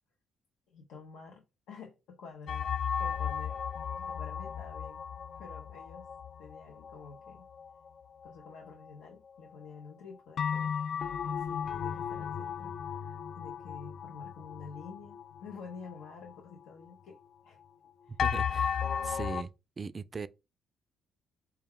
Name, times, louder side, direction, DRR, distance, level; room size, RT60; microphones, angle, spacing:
voice 1, 0.7-3.6 4.0-5.0 5.3-6.1 6.4-7.5 8.2-11.0 11.2-17.2 17.4-17.6 18.0-18.2, left 5 dB, 90° left, 0.7 m, -49 dB
sound 1, 2.5-9.3 9.6-9.7 10.4-16.3 16.8-16.9 18.2-19.4, left 7 dB, 60° left, 0.3 m, -35 dB
voice 2, 18.1-19.5 19.8-20.3, right 4 dB, 35° right, 0.3 m, -39 dB
4.4 x 2.3 x 3.5 m
cardioid pair, 90°, 0 cm